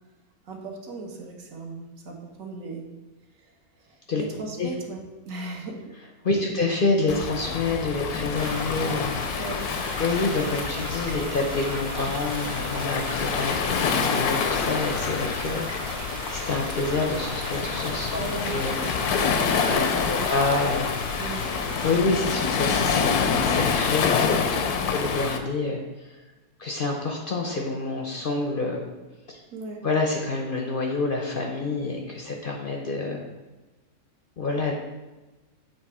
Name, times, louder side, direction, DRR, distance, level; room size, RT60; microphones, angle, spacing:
voice 1, 0.5-2.9 3.8-5.0 5.2-5.9 6.3-6.5 9.3-9.6 18.1-20.2 21.2-21.5 24.6-24.9 29.5-29.8, right 3 dB, 65° right, 1 dB, 1.4 m, -37 dB
voice 2, 6.2-9.2 10.0-18.2 18.5-18.8 19.7-20.9 21.8-26.2 26.6-28.9 29.3-29.4 29.8-33.2 34.4-34.8, left 3 dB, 50° left, 1 dB, 0.6 m, -27 dB
Waves surf, 7.1-25.4, left 6 dB, 80° left, 1.1 m, -27 dB
sound 1, 8.4-22.0, right 2 dB, 85° right, 1.8 m, -37 dB
7.9 x 3.2 x 4.8 m, 1.1 s
omnidirectional pair, 1.6 m